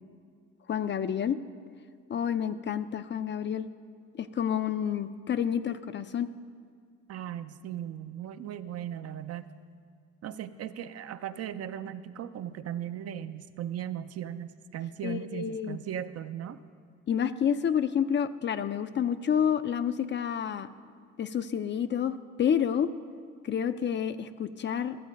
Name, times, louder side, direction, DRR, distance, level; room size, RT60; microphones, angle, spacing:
voice 1, 0.7-1.4 2.1-3.7 4.2-6.3 15.0-15.8 17.1-20.7 21.2-22.9 23.4-25.0, left 8 dB, 40° left, 12 dB, 0.4 m, -29 dB
voice 2, 7.1-9.5 10.2-16.6, right 10 dB, 55° right, 12 dB, 0.5 m, -37 dB
12.0 x 7.3 x 5.2 m, 2.2 s
cardioid pair, 90°, 30 cm